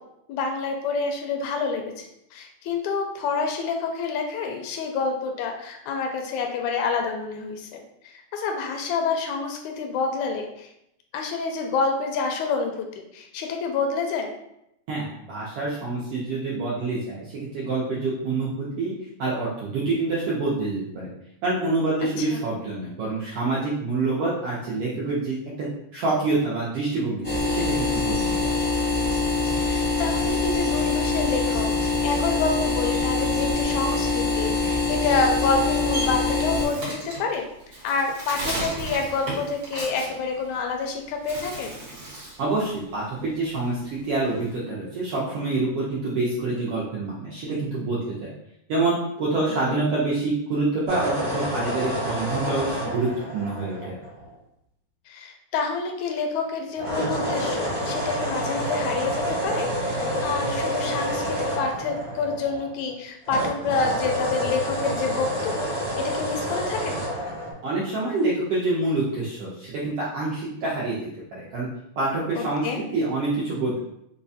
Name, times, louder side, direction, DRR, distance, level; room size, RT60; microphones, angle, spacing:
voice 1, 0.3-10.7 11.1-12.9 13.1-14.3 22.2-22.4 29.6-37.5 37.8-41.7 49.6-49.8 55.1-65.7 66.0-67.0 72.4-72.8, left 4 dB, 85° left, 3 dB, 1.9 m, -28 dB
voice 2, 14.9-18.9 19.2-21.1 21.4-28.5 42.4-48.3 48.7-54.0 67.6-71.0 71.3-71.7 72.0-73.8, right 3 dB, 75° right, -6 dB, 1.3 m, -27 dB
sound 1, 27.2-36.6, left 3 dB, 40° left, 0.6 m, -24 dB
Bird, 35.4-40.9 41.2-42.5 42.8-44.5, right 1 dB, 55° right, 1.5 m, -35 dB
sound 2, 50.9-54.3 56.8-62.9 63.3-67.5, equal, 35° right, 0.7 m, -28 dB
4.8 x 2.2 x 2.6 m, 0.79 s
omnidirectional pair, 3.3 m